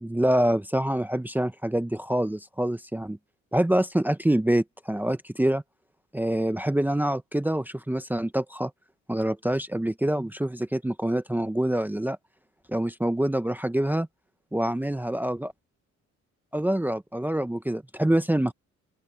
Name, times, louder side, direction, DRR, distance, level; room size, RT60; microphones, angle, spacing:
voice 1, 0.0-3.2 3.5-5.6 6.1-8.7 9.1-12.2 12.7-14.1 14.5-15.5 16.5-18.5, right 1 dB, 5° right, 0.9 m, -26 dB
open air
cardioid pair, 90°, 30 cm